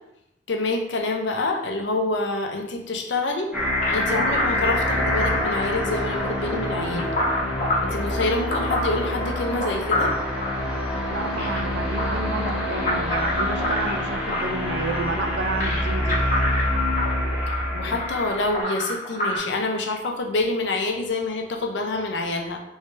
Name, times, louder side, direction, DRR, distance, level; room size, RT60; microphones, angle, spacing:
voice 1, 0.5-3.5 3.9-7.1 7.8-10.1 17.5-22.6, left 2 dB, 70° left, 3 dB, 0.6 m, -27 dB
sound 1, 3.5-18.6, left 1 dB, 5° right, 0.7 m, -26 dB
sound 2, 3.8-19.4, left 1 dB, 45° left, 0.8 m, -28 dB
voice 2, 11.1-16.2, right 3 dB, 65° right, 5 dB, 0.4 m, -31 dB
3.2 x 2.7 x 3.2 m, 0.83 s
head